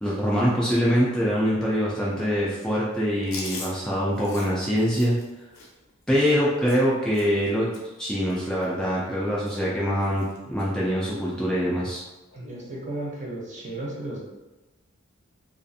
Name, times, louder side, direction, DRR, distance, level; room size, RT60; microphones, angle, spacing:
voice 1, 0.0-5.2 6.1-7.7 8.0-12.0, equal, 5° left, -7 dB, 0.3 m, -24 dB
Chewing mastication, 3.2-7.5 7.7-8.0 8.3-9.2 9.4-9.8 10.0-10.7 11.1-11.3 12.3-12.7, left 3 dB, 85° left, 0.6 m, -42 dB
voice 2, 12.3-14.2, right 1 dB, 35° right, -3 dB, 0.6 m, -34 dB
2.4 x 2.4 x 2.6 m, 1.1 s
head